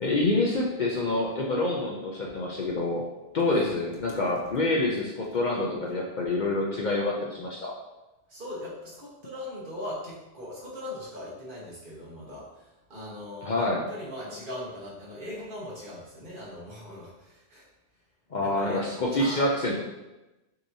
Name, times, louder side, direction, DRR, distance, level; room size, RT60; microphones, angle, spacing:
voice 1, 0.0-3.1 3.3-7.7 13.4-13.8 18.3-19.8, left 2 dB, 50° left, -2 dB, 0.7 m, -27 dB
voice 2, 8.3-17.7 18.4-19.4, left 1 dB, 50° right, -6 dB, 1.5 m, -40 dB
6.4 x 2.9 x 2.7 m, 1.0 s
omnidirectional pair, 1.1 m